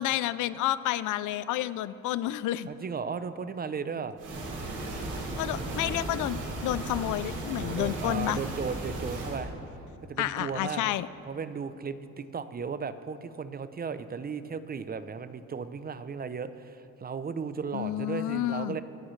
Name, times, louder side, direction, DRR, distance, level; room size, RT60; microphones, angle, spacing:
voice 1, 0.0-2.7 5.4-8.4 10.2-11.1 17.7-18.8, left 14 dB, 80° left, 16 dB, 0.5 m, -30 dB
voice 2, 2.7-4.2 5.5-6.1 7.6-9.5 10.0-10.9 11.3-18.8, right 5 dB, 30° right, 12 dB, 0.6 m, -36 dB
sound 1, 4.2-9.4, right 2 dB, 85° right, 3.5 m, -35 dB
25.5 x 8.7 x 3.2 m, 2.8 s
cardioid pair, 90°, 30 cm